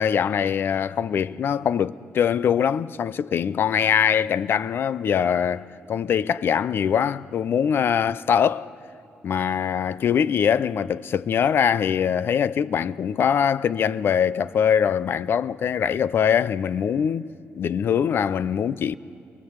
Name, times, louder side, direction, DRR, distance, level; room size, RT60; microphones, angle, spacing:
voice 1, 0.0-8.7 9.2-17.3 17.6-19.0, left 8 dB, 60° left, 0.5 m, -22 dB
28.5 x 22.5 x 8.0 m
cardioid pair, 115°, 4 cm